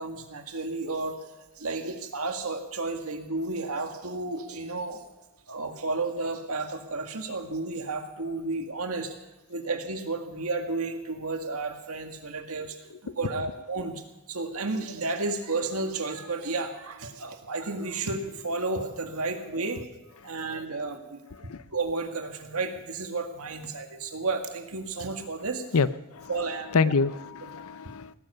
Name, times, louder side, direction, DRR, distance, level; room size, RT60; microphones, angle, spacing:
voice 1, 0.0-5.0 5.5-9.2 9.5-14.0 14.3-19.8 20.2-21.2 21.7-25.6 26.3-26.7 27.5-27.6, right 3 dB, 85° right, 5 dB, 1.8 m, -32 dB
voice 2, 25.7-26.3 26.7-28.1, left 4 dB, 75° left, 15 dB, 0.6 m, -27 dB
18.0 x 10.5 x 6.8 m, 1.0 s
head